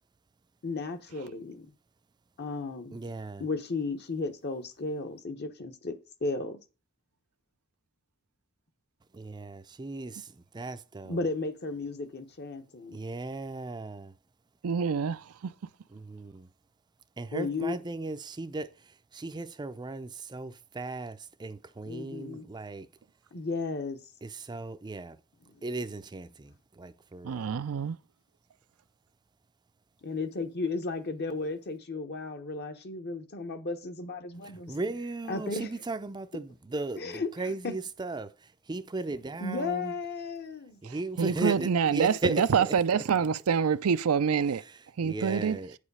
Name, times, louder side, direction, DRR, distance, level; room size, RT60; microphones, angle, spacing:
voice 1, 0.6-1.7 2.4-3.0 3.4-6.6 11.0-13.0 17.3-17.8 21.9-22.5 23.3-24.0 25.5-25.6 30.0-34.7 35.3-35.7 37.0-37.7 39.4-40.8, left 3 dB, 50° left, 1.0 m, -34 dB
voice 2, 2.9-3.4 9.1-11.2 12.9-14.1 15.9-16.5 17.2-22.9 24.2-25.2 25.6-27.5 34.7-39.9 40.8-43.0 44.7-45.8, right 2 dB, 20° right, 0.4 m, -37 dB
voice 3, 14.6-15.5 27.2-28.0 40.8-44.6 45.0-45.6, right 6 dB, 85° right, 0.5 m, -26 dB
9.0 x 4.9 x 5.5 m
head